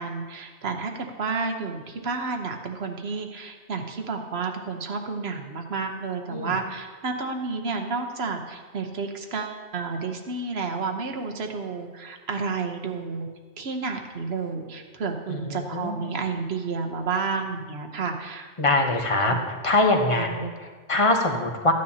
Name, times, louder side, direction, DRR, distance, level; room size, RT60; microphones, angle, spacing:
voice 1, 0.0-13.3 13.6-18.5 19.3-19.4 20.3-20.5, right 4 dB, 60° right, 4 dB, 1.2 m, -31 dB
voice 2, 15.3-16.1 18.6-19.4 19.6-21.7, left 2 dB, 30° left, 3 dB, 0.9 m, -23 dB
14.0 x 9.5 x 2.8 m, 1.4 s
omnidirectional pair, 1.2 m